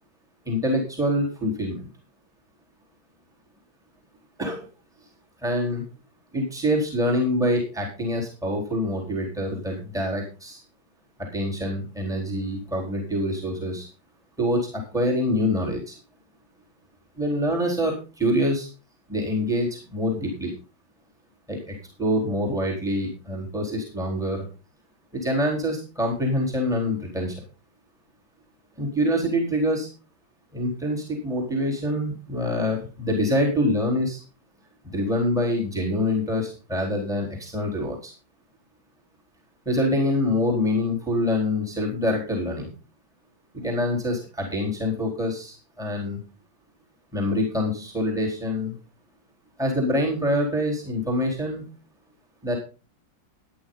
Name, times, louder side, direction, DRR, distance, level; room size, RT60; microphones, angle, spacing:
voice 1, 0.5-1.8 4.4-4.7 5.4-5.8 6.3-10.6 11.2-13.9 14.4-16.0 17.2-18.7 19.1-20.5 21.5-24.5 25.1-27.4 28.8-29.9 30.5-34.2 34.9-38.1 39.7-42.7 43.5-46.2 47.1-48.8 49.6-51.6 52.4-52.5, left 1 dB, ahead, -2 dB, 4.0 m, -25 dB
15.0 x 10.0 x 3.9 m, 0.33 s
omnidirectional pair, 2.2 m